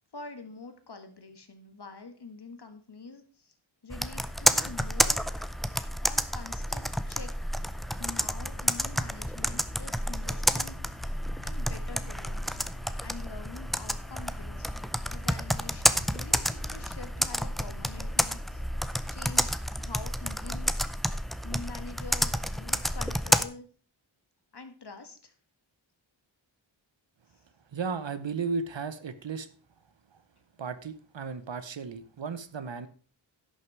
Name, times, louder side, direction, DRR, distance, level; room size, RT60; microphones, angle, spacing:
voice 1, 0.1-3.5 3.8-5.5 6.0-7.5 8.0-11.2 11.4-12.4 13.0-14.7 15.1-18.6 19.1-21.1 21.4-23.7 24.5-25.3, left 4 dB, 55° left, 7 dB, 1.6 m, -46 dB
Computer keyboard, 3.9-23.4, equal, ahead, 0.5 m, -30 dB
sound 1, 7.5-18.9, left 2 dB, 75° left, 2.1 m, -50 dB
voice 2, 27.7-29.5 30.1-30.2 30.6-32.9, right 5 dB, 65° right, 13 dB, 0.9 m, -34 dB
11.0 x 6.4 x 4.6 m, 0.41 s
wide cardioid pair, 80°, 48 cm